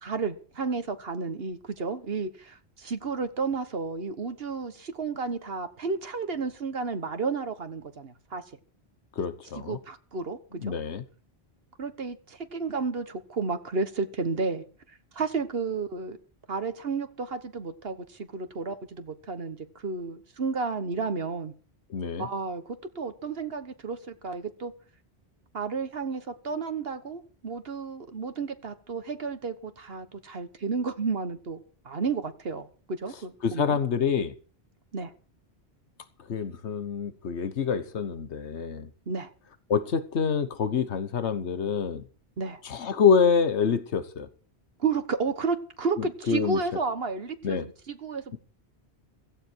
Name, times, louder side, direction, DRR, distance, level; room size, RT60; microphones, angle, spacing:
voice 1, 0.0-8.4 9.5-10.7 11.8-16.2 16.5-21.5 22.2-24.7 25.5-33.8 34.9-35.1 39.1-39.3 42.4-42.6 44.8-48.4, right 4 dB, 60° right, 1.5 m, -32 dB
voice 2, 9.2-9.8 10.6-11.0 21.9-22.3 33.4-34.3 36.3-38.9 39.7-42.0 42.6-44.3 46.3-46.6 47.4-47.7, left 6 dB, 90° left, 1.4 m, -26 dB
16.5 x 15.0 x 4.6 m
omnidirectional pair, 1.1 m